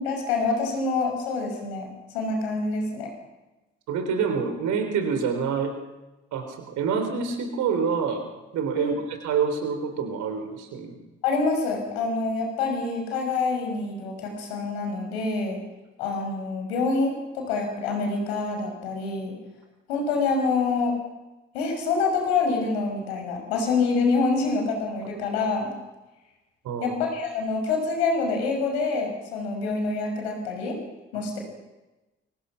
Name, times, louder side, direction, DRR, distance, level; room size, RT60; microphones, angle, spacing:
voice 1, 0.0-3.1 8.7-8.9 11.2-15.6 16.0-19.3 19.9-20.9 21.5-25.7 26.8-30.8 31.1-31.4, left 4 dB, 75° left, 3 dB, 6.2 m, -26 dB
voice 2, 3.9-5.7 6.3-8.3 8.5-11.0 26.6-27.0 31.1-31.3, right 6 dB, 65° right, 6 dB, 4.6 m, -27 dB
29.0 x 24.5 x 6.1 m, 1.1 s
figure-of-eight pair, 40°, 32 cm